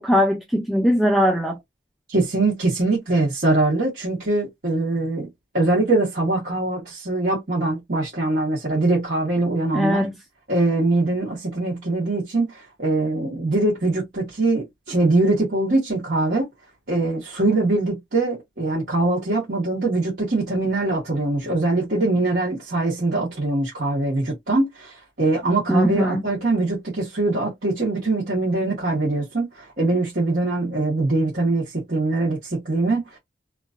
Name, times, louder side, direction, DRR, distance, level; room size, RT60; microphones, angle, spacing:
voice 1, 0.0-1.6 9.7-10.1 25.7-26.2, equal, ahead, 0.3 m, -20 dB
voice 2, 2.1-5.3 5.5-10.0 10.5-16.5 16.9-33.2, right 2 dB, 55° right, 1.1 m, -22 dB
3.0 x 2.4 x 2.4 m
head